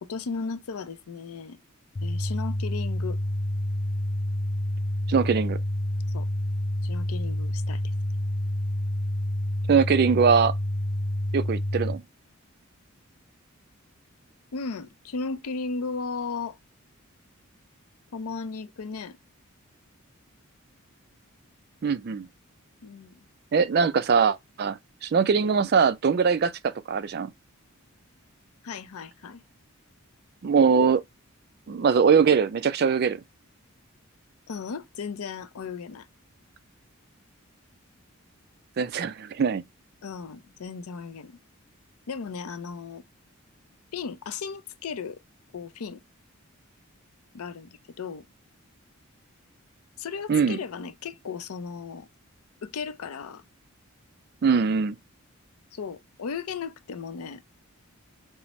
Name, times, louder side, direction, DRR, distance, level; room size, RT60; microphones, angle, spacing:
voice 1, 0.0-1.6 2.0-3.2 6.1-6.3 6.8-7.8 14.5-16.6 18.1-19.2 22.8-23.2 28.6-29.4 34.5-36.1 40.0-41.4 42.1-43.0 43.9-45.2 45.5-46.0 47.3-48.3 50.0-52.1 52.6-53.4 55.7-57.4, left 5 dB, 80° left, 0.5 m, -35 dB
sound 1, 1.9-11.9, left 1 dB, 25° left, 0.5 m, -28 dB
voice 2, 5.1-5.6 9.7-10.5 11.3-12.0 21.8-22.3 23.5-27.3 30.4-31.0 31.7-33.2 38.8-39.6 50.3-50.6 54.4-55.0, right 6 dB, 45° right, 0.3 m, -22 dB
5.4 x 2.0 x 2.9 m
head